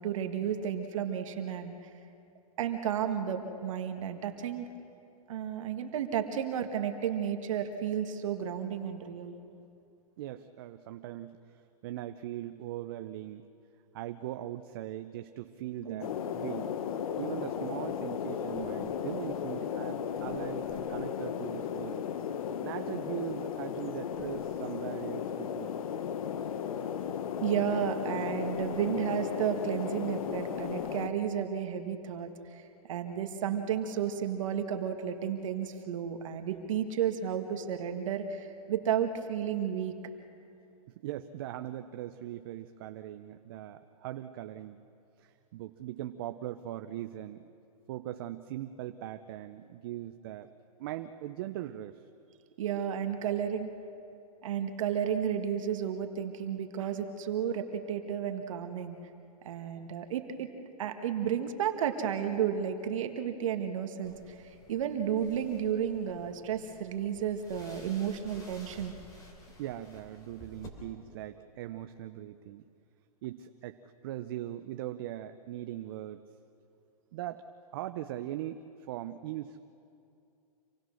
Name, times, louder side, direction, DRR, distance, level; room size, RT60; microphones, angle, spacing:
voice 1, 0.0-1.8 2.6-4.7 5.3-9.3 15.8-16.1 27.4-40.0 52.6-53.7 54.4-59.0 59.4-60.5 60.8-68.9, right 8 dB, 55° right, 6 dB, 1.6 m, -32 dB
voice 2, 10.2-13.4 13.9-16.7 17.2-22.0 22.6-25.7 41.0-44.8 45.2-47.5 47.9-50.5 50.8-52.1 69.6-72.6 73.2-76.2 77.1-77.5 77.7-79.7, right 13 dB, 35° right, 9 dB, 0.6 m, -40 dB
sound 1, 16.0-31.1, left 8 dB, 60° left, 1.2 m, -35 dB
sound 2, 64.0-70.7, left 1 dB, 15° left, 3.1 m, -53 dB
27.0 x 18.5 x 6.3 m, 2.6 s
hypercardioid pair, 155°, 20 cm